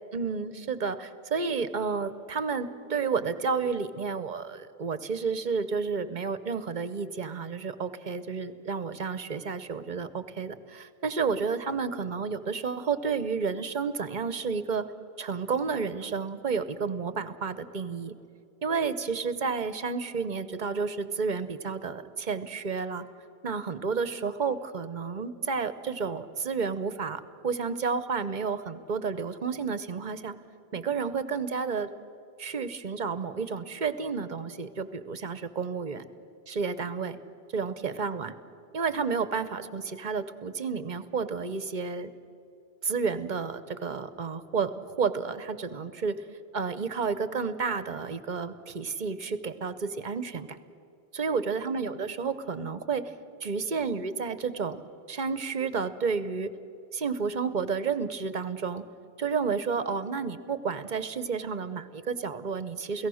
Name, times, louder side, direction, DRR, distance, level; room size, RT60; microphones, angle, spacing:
voice 1, 0.1-14.9 15.2-18.1 18.6-23.0 23.4-30.4 30.7-31.9 32.4-36.1 36.5-37.2 37.5-38.3 38.7-42.1 42.8-44.7 45.0-46.2 46.5-50.6 51.1-53.1 53.4-54.8 55.1-56.5 56.9-58.8 59.2-63.1, right 5 dB, 50° right, 13 dB, 1.0 m, -31 dB
29.0 x 17.0 x 6.4 m, 2.6 s
omnidirectional pair, 1.0 m